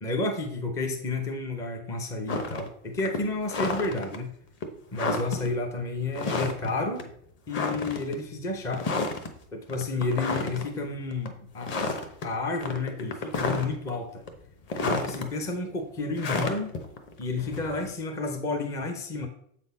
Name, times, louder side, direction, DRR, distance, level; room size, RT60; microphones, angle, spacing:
voice 1, 0.0-4.3 4.9-7.1 7.5-8.9 9.5-11.9 12.2-14.3 14.8-16.8 17.2-19.3, left 3 dB, 10° left, 5 dB, 0.4 m, -31 dB
sound 1, 2.3-2.7 3.0-4.2 4.6-4.7 4.9-5.5 6.1-6.7 7.0-7.1 7.5-8.2 8.7-9.3 9.7-10.7 11.1-11.3 11.6-12.3 12.6-13.9 14.3-15.2 16.2-17.9, left 3 dB, 25° left, 0.9 m, -30 dB
7.8 x 4.1 x 5.3 m, 0.68 s
supercardioid pair, 160°, 42 cm